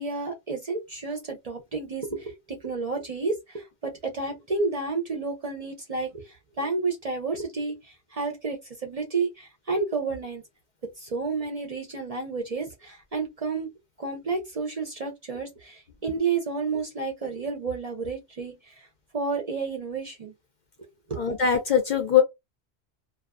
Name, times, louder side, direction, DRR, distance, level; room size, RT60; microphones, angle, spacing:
voice 1, 0.0-10.4 11.0-13.7 14.0-18.9 19.1-20.3 21.1-21.2, right 4 dB, 45° right, 0.5 m, -31 dB
voice 2, 21.2-22.2, left 8 dB, 55° left, 0.5 m, -21 dB
2.3 x 2.3 x 2.3 m
omnidirectional pair, 1.1 m